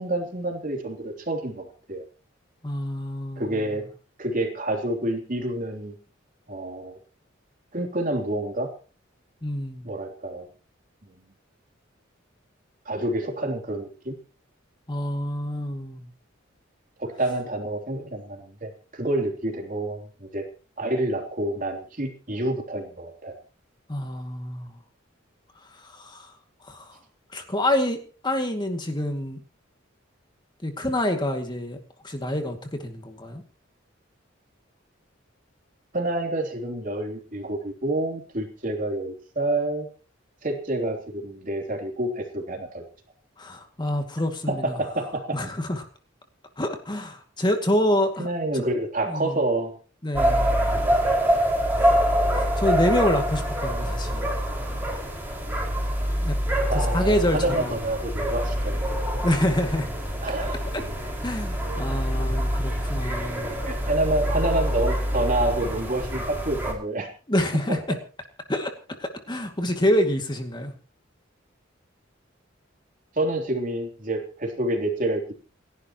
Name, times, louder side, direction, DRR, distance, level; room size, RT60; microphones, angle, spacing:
voice 1, 0.0-2.0 3.4-3.9 4.2-6.0 6.5-7.0 7.7-8.7 9.8-10.5 12.8-14.2 17.0-20.4 20.8-23.3 35.9-39.9 40.4-42.8 44.5-45.4 48.2-49.7 56.7-58.7 60.2-60.6 63.6-67.1 67.7-68.0 73.2-75.4, right 1 dB, 45° right, 3 dB, 3.2 m, -28 dB
voice 2, 2.6-3.8 9.4-9.9 14.9-16.1 23.9-24.8 25.7-26.3 26.6-27.0 27.3-29.4 30.6-31.8 32.0-33.4 43.4-44.8 45.3-45.8 46.6-48.3 48.5-48.6 49.1-49.4 50.0-50.5 51.7-52.0 52.3-54.3 56.2-56.4 56.7-57.8 59.2-59.9 61.2-63.6 67.3-68.0 68.5-68.7 69.0-70.7, left 1 dB, 25° left, 5 dB, 2.2 m, -27 dB
sound 1, 50.1-66.7, equal, 10° right, 5.2 m, -25 dB
28.5 x 11.5 x 3.0 m, 0.38 s
head